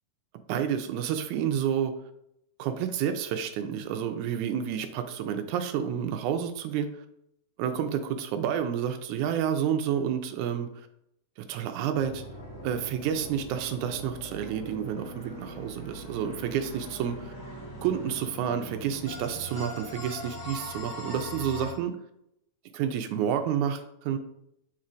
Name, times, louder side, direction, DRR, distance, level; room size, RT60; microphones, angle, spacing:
voice 1, 0.5-1.9 2.6-7.0 7.6-10.9 11.5-12.2 12.6-17.3 17.8-21.9 22.7-24.2, right 9 dB, 80° right, 7 dB, 1.8 m, -30 dB
sound 1, 12.0-21.7, left 1 dB, 20° left, 1.9 m, -41 dB
8.8 x 4.3 x 2.5 m, 0.78 s
omnidirectional pair, 3.9 m